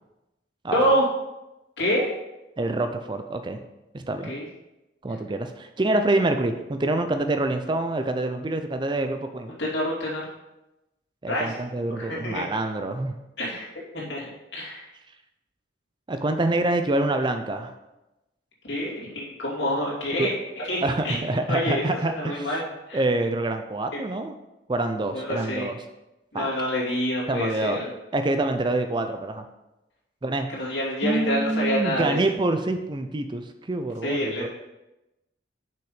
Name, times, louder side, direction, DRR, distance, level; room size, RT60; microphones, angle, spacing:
voice 1, 0.7-1.1 1.8-2.0 4.2-4.4 9.6-10.3 11.3-11.6 11.9-12.5 13.4-13.7 13.9-14.9 18.6-21.2 21.5-21.8 22.2-23.0 25.1-25.7 26.3-27.8 30.5-32.2 34.0-34.5, equal, 60° left, -5 dB, 2.7 m, -27 dB
voice 2, 2.6-3.6 3.9-4.3 5.0-9.5 11.2-13.2 16.1-17.7 20.2-20.3 20.8-22.6 22.9-24.3 24.7-25.8 26.3-26.5 27.3-27.8 28.1-29.4 30.2-30.5 31.0-34.5, right 2 dB, 25° right, 7 dB, 0.4 m, -26 dB
6.1 x 6.1 x 5.0 m, 0.98 s
head